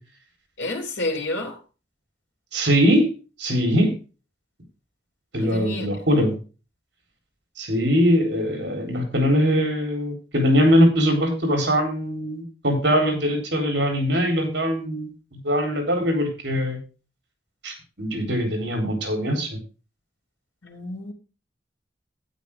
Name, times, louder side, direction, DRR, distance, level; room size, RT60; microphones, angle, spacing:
voice 1, 0.6-1.6 5.4-5.9 20.6-21.1, left 2 dB, 85° left, 3.1 m, -30 dB
voice 2, 2.5-3.1 3.4-3.9 5.3-6.4 7.6-16.8 17.6-19.6, equal, 70° right, 3.9 m, -21 dB
12.0 x 9.8 x 3.6 m
head